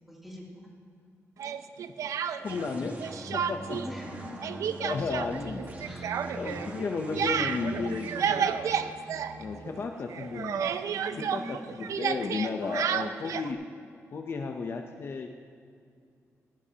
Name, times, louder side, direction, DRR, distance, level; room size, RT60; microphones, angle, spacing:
voice 1, 0.1-0.7 3.7-4.3 5.8-6.1 7.7-8.0 10.8-12.0 12.7-12.9, equal, 5° right, -4 dB, 2.8 m, -44 dB
Speech, 1.4-2.7 3.0-3.9 4.1-9.8 10.1-13.5, right 7 dB, 80° right, 0.5 m, -31 dB
voice 2, 2.4-3.0 3.3-3.8 4.2-5.7 6.3-8.5 9.4-10.7 11.2-13.6 14.1-15.3, left 4 dB, 50° left, 4 dB, 0.7 m, -34 dB
sound 1, 2.4-11.9, right 2 dB, 30° right, 1.6 m, -43 dB
17.5 x 16.5 x 2.9 m, 2.3 s
wide cardioid pair, 145°, 5 cm